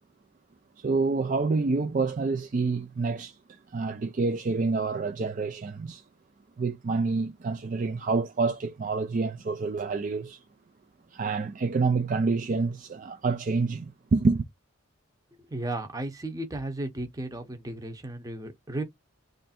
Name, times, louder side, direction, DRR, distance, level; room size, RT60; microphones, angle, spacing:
voice 1, 0.8-6.0 6.6-10.4 11.1-14.4, right 4 dB, 40° right, 0.4 m, -27 dB
voice 2, 15.5-18.8, right 1 dB, 15° right, 0.8 m, -34 dB
3.3 x 2.6 x 4.1 m
head